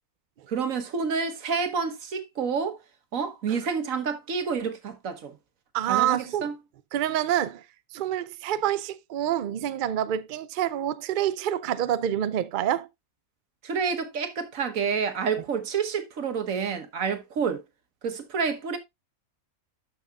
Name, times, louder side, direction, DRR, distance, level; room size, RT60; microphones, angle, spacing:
voice 1, 0.5-2.8 3.1-5.4 5.9-6.5 13.6-17.6 18.0-18.8, right 5 dB, 65° right, 1.5 m, -29 dB
voice 2, 5.7-6.5 6.9-7.7 7.9-12.9, right 11 dB, 90° right, 0.4 m, -27 dB
12.5 x 5.7 x 2.4 m
omnidirectional pair, 1.5 m